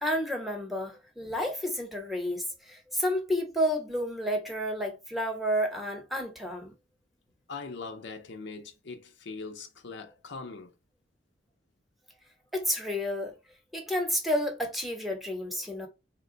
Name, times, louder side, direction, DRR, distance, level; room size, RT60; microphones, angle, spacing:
voice 1, 0.0-6.7 12.5-13.3 13.7-15.9, equal, ahead, 1.0 m, -30 dB
voice 2, 7.5-10.7, left 4 dB, 70° left, 0.7 m, -41 dB
4.0 x 2.2 x 3.9 m
head